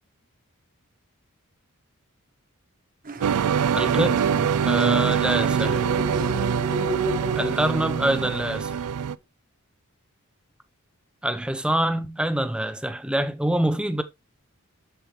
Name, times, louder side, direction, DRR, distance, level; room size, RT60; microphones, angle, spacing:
sound 1, 3.0-7.6, right 3 dB, 40° right, 0.7 m, -39 dB
sound 2, 3.2-9.1, right 7 dB, 85° right, 0.4 m, -24 dB
voice 1, 3.7-4.2 4.6-5.8 7.4-8.8 11.2-14.0, right 1 dB, 5° right, 0.7 m, -25 dB
sound 3, 5.3-8.6, right 2 dB, 25° right, 1.1 m, -32 dB
7.9 x 6.8 x 3.1 m
head